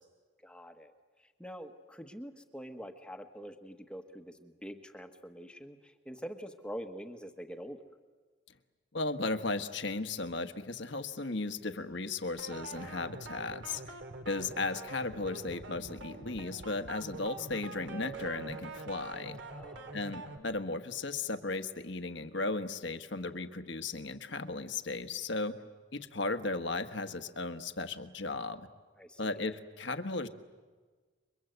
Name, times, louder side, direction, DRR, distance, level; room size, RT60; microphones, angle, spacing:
voice 1, 0.4-0.9 1.2-7.8 19.5-20.0 29.0-29.4, equal, 5° left, 5 dB, 1.4 m, -45 dB
voice 2, 8.9-13.9 14.3-19.4 19.9-25.6 25.9-28.7 29.2-30.3, left 3 dB, 60° left, 9 dB, 1.4 m, -36 dB
sound 1, 12.4-20.4, right 2 dB, 65° right, 2.6 m, -45 dB
Keyboard (musical), 17.9-20.3, right 5 dB, 80° right, 6.3 m, -48 dB
29.5 x 24.0 x 8.1 m, 1.4 s
head